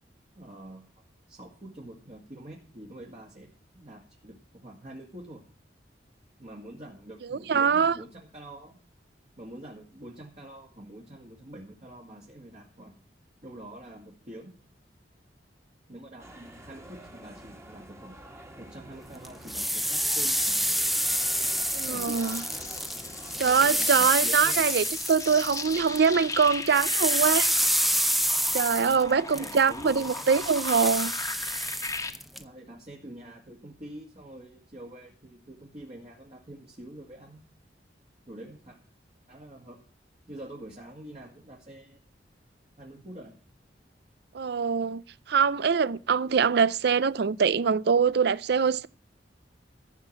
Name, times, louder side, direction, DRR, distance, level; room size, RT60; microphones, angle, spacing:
voice 1, 0.4-0.9 1.3-5.4 6.4-8.8 9.4-12.9 13.4-14.5 15.9-18.2 18.6-20.7 21.8-22.2 23.3-24.7 28.5-30.3 32.4-37.4 38.3-38.8 39.3-39.8 40.3-42.0 42.8-43.3, right 1 dB, 40° right, 2.1 m, -45 dB
voice 2, 7.3-8.0 21.7-22.4 23.4-27.6 28.5-31.1 44.3-48.9, right 6 dB, 65° right, 0.5 m, -24 dB
sound 1, 16.2-23.9, right 1 dB, 15° right, 1.7 m, -47 dB
sound 2, 19.2-26.1 26.3-32.4, equal, ahead, 0.7 m, -28 dB
sound 3, 21.5-32.1, left 3 dB, 20° left, 1.3 m, -38 dB
14.5 x 5.7 x 8.7 m
head